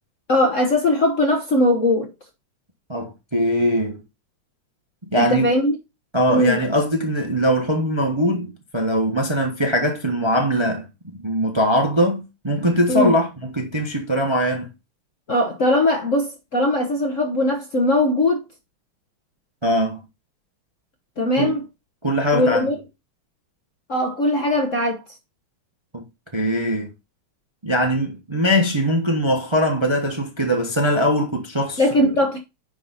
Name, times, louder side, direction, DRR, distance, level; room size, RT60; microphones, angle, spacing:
voice 1, 0.3-2.1 5.2-5.7 6.3-6.6 12.9-13.1 15.3-18.4 21.2-21.6 22.3-22.8 23.9-25.0 31.8-32.4, left 1 dB, 45° left, 1.1 m, -20 dB
voice 2, 2.9-4.0 5.1-5.5 6.1-10.9 11.1-14.7 19.6-20.0 21.4-21.5 22.0-22.7 25.9-26.0 26.3-26.9 27.6-31.8, equal, 20° right, 0.9 m, -21 dB
9.8 x 4.0 x 4.1 m
omnidirectional pair, 2.3 m